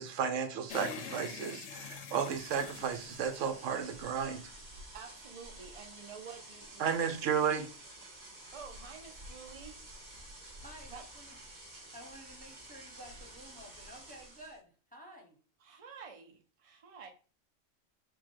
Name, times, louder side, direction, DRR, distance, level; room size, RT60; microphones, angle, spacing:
voice 1, 0.0-4.5 6.8-7.7, right 7 dB, 80° right, 1.0 m, -33 dB
sound 1, 0.7-4.2, left 7 dB, 70° left, 0.9 m, -45 dB
sound 2, 2.0-14.6, right 1 dB, 40° right, 1.2 m, -51 dB
voice 2, 4.9-7.3 8.5-9.8 10.9-11.0 15.6-17.1, right 6 dB, 55° right, 0.3 m, -49 dB
voice 3, 10.6-11.4 11.9-15.4, equal, 10° left, 0.9 m, -52 dB
4.4 x 2.2 x 4.5 m
omnidirectional pair, 1.3 m